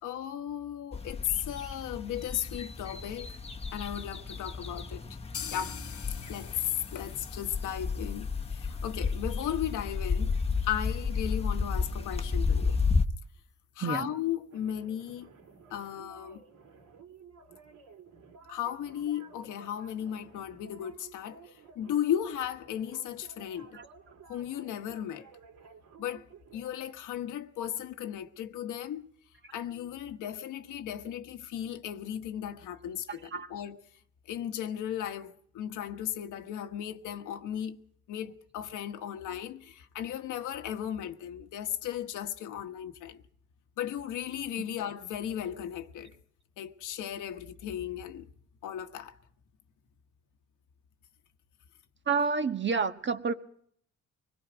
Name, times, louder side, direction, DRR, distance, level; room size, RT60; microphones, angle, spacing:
voice 1, 0.0-3.4 3.7-5.0 5.5-5.8 6.3-10.4 10.6-12.8 13.8-15.3 15.7-16.4 18.5-23.8 24.3-25.3 26.0-26.3 26.5-29.1 29.5-33.8 34.3-37.8 38.1-43.2 43.8-46.1 46.6-48.3 48.6-49.2, left 10 dB, 85° left, 1.4 m, -36 dB
sound 1, 0.9-13.0, left 4 dB, 20° left, 1.1 m, -32 dB
sound 2, 5.3-13.1 13.4-13.5 13.8-13.9 14.3-14.4, left 8 dB, 50° left, 1.0 m, -48 dB
sound 3, 14.5-26.9, right 5 dB, 75° right, 3.2 m, -54 dB
voice 2, 52.1-53.3, right 5 dB, 40° right, 1.4 m, -29 dB
25.0 x 21.0 x 5.1 m
cardioid pair, 90°, 30 cm